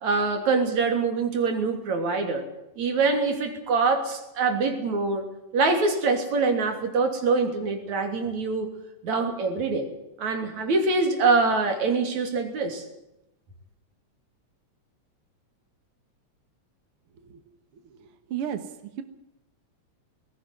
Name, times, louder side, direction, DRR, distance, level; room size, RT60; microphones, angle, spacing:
voice 1, 0.0-2.4 2.8-5.2 5.5-8.7 9.0-9.9 10.2-12.8, right 4 dB, 70° right, 5 dB, 4.3 m, -24 dB
voice 2, 17.7-19.0, right 9 dB, 55° right, 9 dB, 1.9 m, -35 dB
20.0 x 16.5 x 9.3 m, 0.89 s
omnidirectional pair, 3.3 m